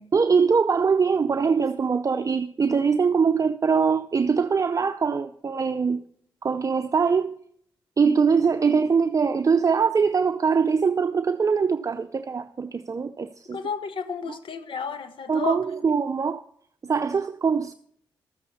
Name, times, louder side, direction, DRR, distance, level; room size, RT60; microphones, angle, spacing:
voice 1, 0.1-6.0 6.4-7.4 8.0-13.6 14.3-14.4 15.3-16.4 16.8-17.7, right 5 dB, 35° right, 0.6 m, -22 dB
voice 2, 13.5-15.6, left 5 dB, 65° left, 1.2 m, -32 dB
13.5 x 8.0 x 4.2 m
supercardioid pair, 50°, 9 cm